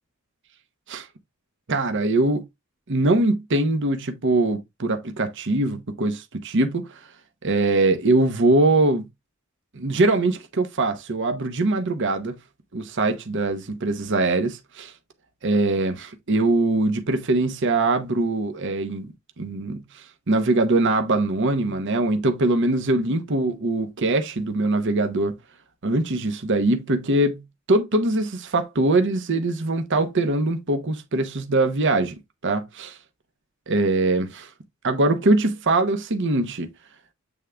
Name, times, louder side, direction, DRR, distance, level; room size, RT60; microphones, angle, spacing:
voice 1, 1.7-2.4 2.9-6.9 7.4-9.0 9.7-12.3 12.7-14.9 15.4-25.3 25.8-27.4 27.7-32.1 32.4-33.0 33.7-34.5 34.8-36.7, right 2 dB, 60° right, 0.9 m, -22 dB
8.1 x 3.6 x 3.3 m
head